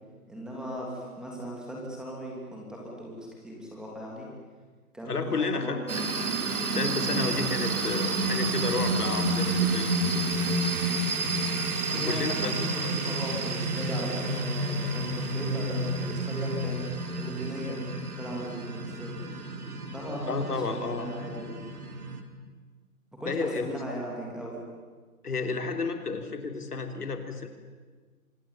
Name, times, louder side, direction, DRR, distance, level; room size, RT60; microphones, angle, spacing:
voice 1, 0.3-4.3 4.9-5.8 6.7-7.2 11.9-16.7 17.1-17.8 18.2-19.1 19.9-21.6 23.2-24.6, equal, ahead, -3 dB, 3.0 m, -38 dB
voice 2, 5.1-6.0 6.7-9.9 11.9-12.9 20.3-21.1 23.3-23.8 25.2-27.5, left 4 dB, 85° left, 6 dB, 3.7 m, -32 dB
sound 1, 5.9-22.2, right 2 dB, 70° right, 3.9 m, -30 dB
25.5 x 20.5 x 8.9 m, 1.4 s
hypercardioid pair, 165°, 45 cm